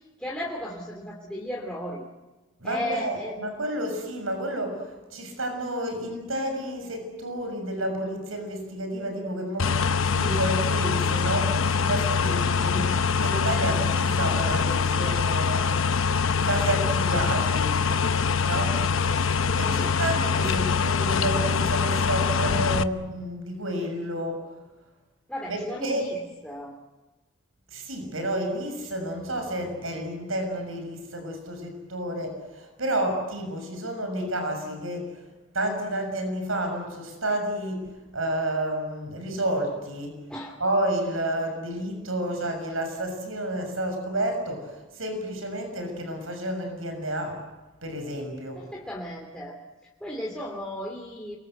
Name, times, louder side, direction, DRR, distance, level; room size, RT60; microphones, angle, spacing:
voice 1, 0.2-2.0 2.6-3.5 12.2-12.8 19.7-19.9 25.3-26.7 40.3-40.6 48.6-49.6 50.0-51.4, equal, 5° left, -2 dB, 2.8 m, -35 dB
voice 2, 2.6-15.8 16.3-17.7 18.4-18.8 19.6-24.5 25.5-26.1 27.7-35.1 35.5-40.2 40.6-47.4 47.8-48.6, right 1 dB, 80° right, 5 dB, 6.8 m, -30 dB
sound 1, 9.6-22.8, left 5 dB, 80° left, 0.9 m, -24 dB
29.5 x 22.5 x 8.0 m, 1.2 s
head